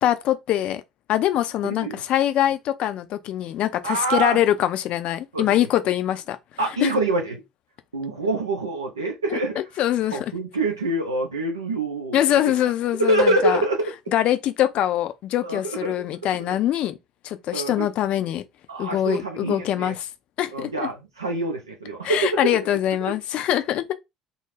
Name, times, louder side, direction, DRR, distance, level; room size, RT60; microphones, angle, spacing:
voice 1, 0.0-0.8 1.1-6.4 6.8-6.9 9.3-10.3 12.1-13.6 14.1-17.0 17.2-18.4 18.8-20.1 20.4-20.9 22.0-23.9, left 12 dB, 50° left, 0.4 m, -23 dB
voice 2, 1.6-2.0 3.8-4.4 5.3-5.5 6.6-7.4 7.9-9.6 10.1-12.2 12.4-12.5 13.0-13.9 15.4-15.9 16.4-16.5 17.5-17.9 18.7-19.9 20.5-22.6 23.1-23.2, right 2 dB, 85° right, 0.4 m, -25 dB
2.3 x 2.0 x 3.1 m
figure-of-eight pair, 60°, 2 cm